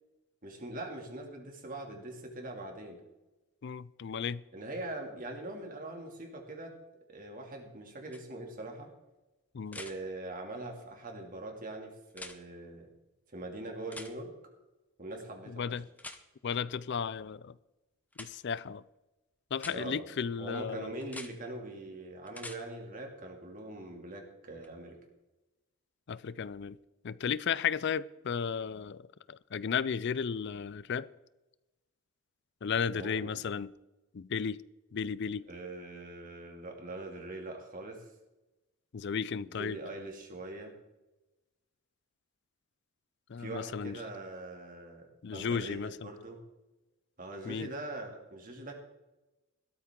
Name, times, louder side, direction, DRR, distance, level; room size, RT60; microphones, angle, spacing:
voice 1, 0.4-3.0 4.5-6.8 7.1-8.9 9.7-12.9 13.3-14.3 15.0-15.8 19.7-20.0 20.4-25.0 32.8-33.3 35.5-38.1 39.5-40.7 43.4-46.4 47.2-48.7, right 2 dB, 35° right, 2.6 m, -42 dB
voice 2, 3.6-4.4 9.5-9.8 15.5-15.9 16.4-17.6 18.2-18.8 19.5-20.9 26.1-26.8 27.0-31.1 32.6-33.7 34.1-34.6 34.9-35.4 38.9-39.8 43.3-44.0 45.2-46.1 47.4-47.7, left 6 dB, 50° left, 0.4 m, -34 dB
sound 1, 8.1-8.2 9.7-9.9 12.1-12.4 13.9-14.1 16.0-16.2 18.1-18.3 19.5-19.8 21.0-21.3 22.3-22.6 24.6-24.7, left 2 dB, 5° left, 0.8 m, -44 dB
17.0 x 13.0 x 3.8 m
head